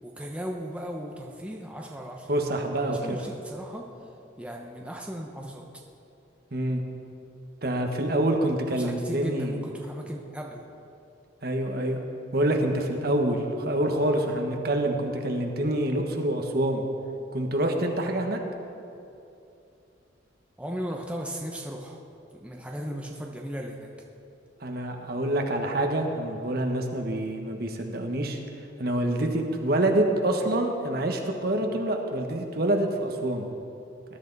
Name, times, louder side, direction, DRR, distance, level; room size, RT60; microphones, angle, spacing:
voice 1, 0.0-2.3 2.9-3.9 4.4-5.7 8.7-10.6 20.6-22.0 22.4-23.9, equal, 5° right, 0 dB, 0.8 m, -36 dB
voice 2, 2.3-3.2 6.5-6.8 7.6-9.6 11.4-12.0 12.3-16.8 17.3-18.4 24.6-28.4 28.8-33.5, right 1 dB, 55° right, 3 dB, 1.3 m, -26 dB
19.5 x 11.0 x 4.1 m, 2.7 s
head